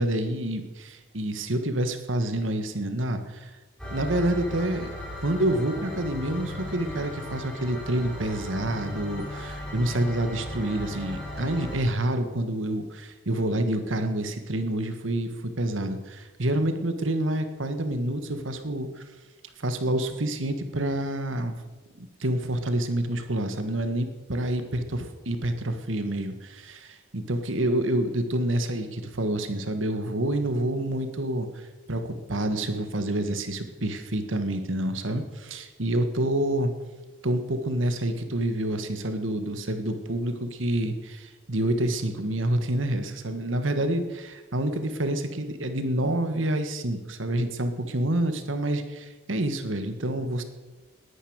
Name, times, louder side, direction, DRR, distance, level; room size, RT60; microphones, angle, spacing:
voice 1, 0.0-3.5 3.9-4.9 5.2-18.9 19.6-21.6 22.0-31.6 31.9-36.7 37.2-50.4, right 1 dB, 85° right, 8 dB, 1.7 m, -28 dB
sound 1, 3.8-11.8, left 1 dB, 5° left, 4.3 m, -37 dB
19.0 x 10.0 x 6.5 m, 1.2 s
head